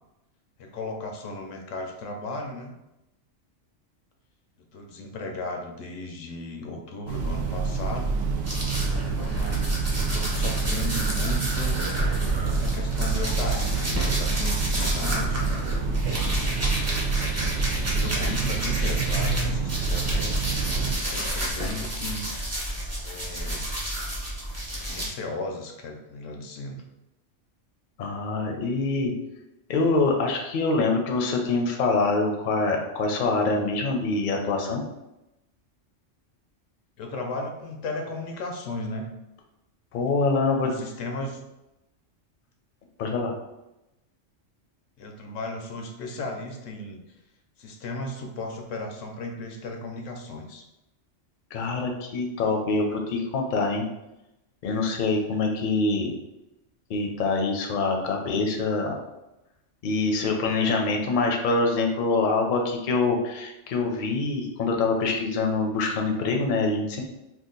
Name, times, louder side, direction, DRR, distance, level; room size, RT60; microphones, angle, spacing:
voice 1, 0.6-2.7 4.7-8.1 9.1-11.8 12.4-15.4 17.5-22.3 23.0-23.7 24.7-26.8 37.0-39.1 40.6-41.4 45.0-47.2 47.6-50.6, left 2 dB, 85° left, 3 dB, 1.0 m, -36 dB
Train, 7.1-21.0, right 4 dB, 75° right, 0.9 m, -27 dB
sound 1, 8.4-19.4 19.7-25.1, equal, 15° right, 0.6 m, -30 dB
voice 2, 28.0-29.1 29.7-34.8 39.9-40.7 43.0-43.3 51.5-53.8 54.6-56.1 56.9-59.0 59.8-67.0, left 3 dB, 55° left, 2 dB, 0.6 m, -25 dB
2.8 x 2.4 x 3.8 m, 0.94 s
omnidirectional pair, 1.3 m